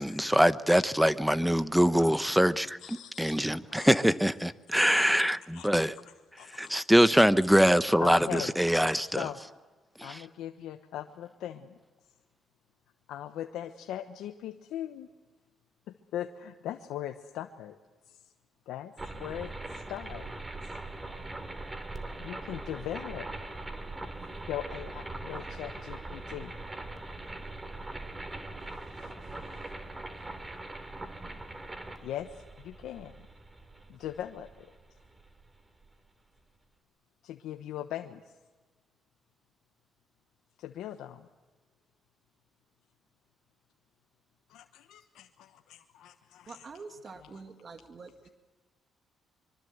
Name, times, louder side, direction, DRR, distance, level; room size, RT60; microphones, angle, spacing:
voice 1, 0.0-5.9 6.5-9.3 10.0-10.2, equal, ahead, 1.0 m, -24 dB
voice 2, 2.8-3.4 3.7-3.9 5.5-5.7 6.4-6.7 8.0-8.5 9.1-9.4 10.0-11.8 13.1-15.1 15.9-17.8 18.1-18.3 18.7-20.3 21.1-21.2 22.2-23.3 24.5-26.5 28.9-29.7 32.0-33.3 33.9-34.7 37.2-38.2 40.6-41.3 44.5-46.7 47.2-47.3, left 11 dB, 85° left, 1.1 m, -40 dB
sound 1, 19.0-35.9, right 2 dB, 20° right, 3.0 m, -41 dB
voice 3, 46.5-48.3, right 4 dB, 40° right, 2.1 m, -46 dB
25.0 x 24.0 x 8.0 m
cardioid pair, 90°, 0 cm